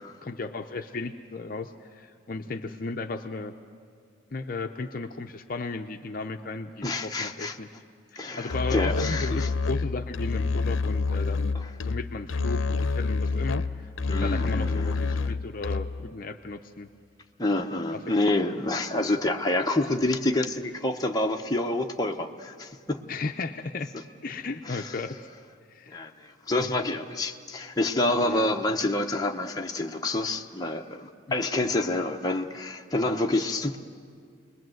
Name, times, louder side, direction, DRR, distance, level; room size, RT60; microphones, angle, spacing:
voice 1, 0.2-3.5 4.3-7.7 8.1-16.9 17.9-18.3 23.1-23.9 24.2-25.1 25.7-26.1 26.6-26.7 28.2-28.5, left 3 dB, 45° left, 5 dB, 0.6 m, -35 dB
voice 2, 6.8-7.5 8.2-9.5 11.5-11.7 14.1-15.3 17.4-23.0 24.7-25.0 25.9-33.8, left 2 dB, 20° left, 2 dB, 0.9 m, -28 dB
Musical instrument, 8.5-16.1, left 4 dB, 80° left, 0.6 m, -28 dB
28.0 x 21.0 x 7.8 m, 2.1 s
head